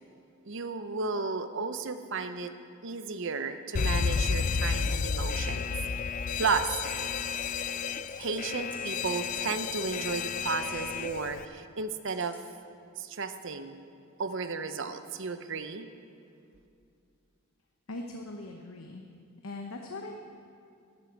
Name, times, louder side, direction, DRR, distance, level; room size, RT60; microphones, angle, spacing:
voice 1, 0.5-2.5 2.8-5.7 6.4-6.7 8.2-12.4 13.0-13.8 14.2-15.9, right 4 dB, 60° right, 10 dB, 0.8 m, -33 dB
Alarm, 3.8-11.5, left 5 dB, 35° left, 0.3 m, -31 dB
sound 1, 4.7-5.3 6.7-7.3 8.1-8.4 8.7-9.3 10.7-11.3 12.1-12.4, left 2 dB, 10° left, 2.0 m, -52 dB
voice 2, 17.9-19.0 19.4-20.3, left 2 dB, 75° left, 2 dB, 0.9 m, -40 dB
12.5 x 11.0 x 7.2 m, 2.5 s
head